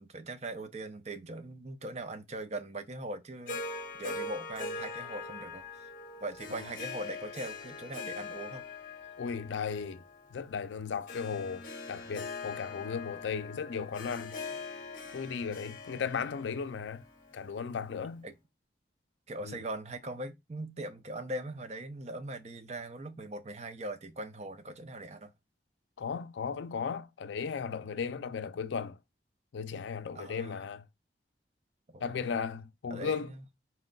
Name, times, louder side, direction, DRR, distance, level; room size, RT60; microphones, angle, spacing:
voice 1, 0.0-5.9 6.2-8.6 18.2-18.3 19.3-25.3 30.1-30.6 31.9-32.4 32.9-33.4, right 1 dB, 35° right, 0.5 m, -41 dB
Harp, 3.5-17.8, left 4 dB, 50° left, 0.7 m, -42 dB
voice 2, 9.2-10.0 10.3-14.4 15.1-17.0 17.3-18.3 19.4-19.6 26.0-29.0 29.5-30.8 32.0-33.3, left 6 dB, 80° left, 0.4 m, -36 dB
4.3 x 2.2 x 3.8 m
head